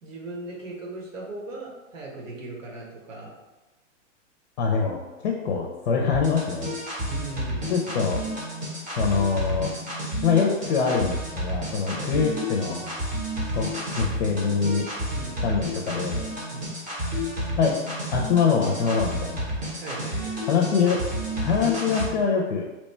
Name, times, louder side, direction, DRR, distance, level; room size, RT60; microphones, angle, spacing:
voice 1, 0.0-3.4 7.1-7.9 11.9-12.1 15.1-15.4 16.5-16.7 19.8-20.4, right 2 dB, 85° right, -3 dB, 1.3 m, -38 dB
voice 2, 4.6-6.7 7.7-8.2 9.0-9.7 10.2-12.9 13.5-14.9 15.4-16.2 17.6-17.8 18.1-19.5 20.5-21.0 21.4-22.6, left 5 dB, 45° left, 1 dB, 0.5 m, -24 dB
sound 1, 6.1-22.1, equal, 20° right, 0.8 m, -31 dB
3.0 x 2.2 x 4.2 m, 1.1 s
hypercardioid pair, 165°, 37 cm